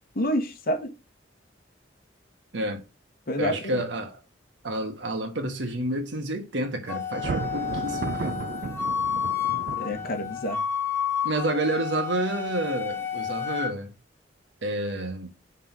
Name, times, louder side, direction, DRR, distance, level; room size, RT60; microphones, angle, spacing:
voice 1, 0.1-0.9 3.3-3.8 9.8-10.6, equal, 55° left, 1.2 m, -28 dB
voice 2, 2.5-2.8 3.4-4.2 4.6-8.4 11.2-13.9 14.6-15.3, right 1 dB, 75° right, 1.4 m, -29 dB
Wind instrument woodwind instrument, 6.9-13.7, left 8 dB, 15° left, 1.2 m, -30 dB
Thunder, 7.1-10.4, right 5 dB, 50° right, 0.4 m, -33 dB
5.6 x 3.7 x 5.9 m
head